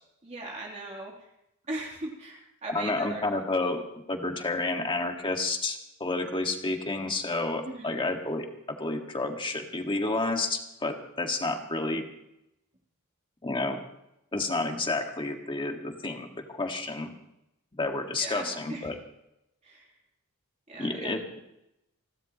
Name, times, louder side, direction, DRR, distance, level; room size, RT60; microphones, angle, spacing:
voice 1, 0.2-1.3 1.7-3.3 3.6-3.8 7.6-8.1 18.1-18.9 19.6-19.9 20.7-21.2, right 2 dB, 30° right, -2 dB, 3.2 m, -39 dB
voice 2, 2.7-3.8 4.1-12.1 13.4-13.8 14.3-17.1 17.7-19.0 20.8-21.2, left 2 dB, 25° left, 3 dB, 1.8 m, -30 dB
29.5 x 12.5 x 3.1 m, 0.84 s
head